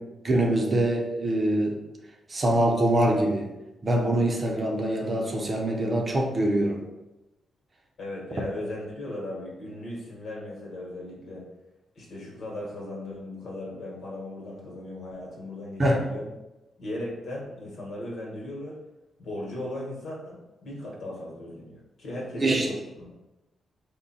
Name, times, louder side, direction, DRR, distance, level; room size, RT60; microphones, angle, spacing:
voice 1, 0.2-1.8 2.3-3.5 3.8-6.8 15.8-16.0 22.4-22.7, right 1 dB, 35° right, 1 dB, 0.7 m, -24 dB
voice 2, 8.0-11.4 11.9-16.3 16.8-18.8 19.2-23.2, left 1 dB, 65° left, -3 dB, 1.2 m, -37 dB
3.7 x 2.2 x 4.1 m, 1.0 s
cardioid pair, 90°, 0 cm